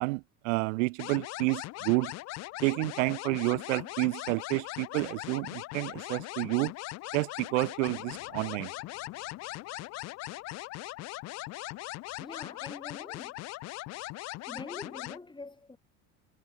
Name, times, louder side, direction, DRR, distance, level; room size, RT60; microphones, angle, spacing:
voice 1, 0.0-2.1 2.6-6.7 7.1-8.7, right 24 dB, 80° right, 0.5 m, -30 dB
sound 1, 1.0-15.2, left 18 dB, 45° left, 0.4 m, -40 dB
sound 2, 7.9-11.9, left 30 dB, 75° left, 5.7 m, -61 dB
voice 2, 12.2-13.3 14.5-15.8, left 3 dB, 10° left, 1.9 m, -45 dB
hypercardioid pair, 70°, 38 cm